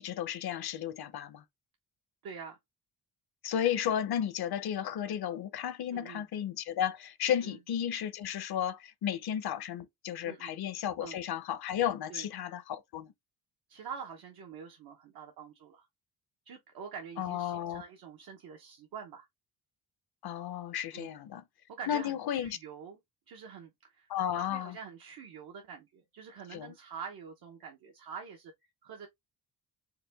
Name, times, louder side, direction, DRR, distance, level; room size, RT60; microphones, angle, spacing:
voice 1, 0.0-1.4 3.4-13.1 17.2-17.8 20.2-21.4 21.9-22.6 24.1-24.8 26.5-26.7, left 10 dB, 70° left, 0.8 m, -33 dB
voice 2, 2.2-2.6 5.9-6.2 7.4-7.6 10.2-10.5 11.0-11.2 12.1-12.3 13.7-15.9 16.5-19.3 20.9-21.1 21.7-23.0 23.3-29.1, right 6 dB, 65° right, 0.9 m, -46 dB
4.9 x 2.2 x 3.4 m
wide cardioid pair, 165°, 39 cm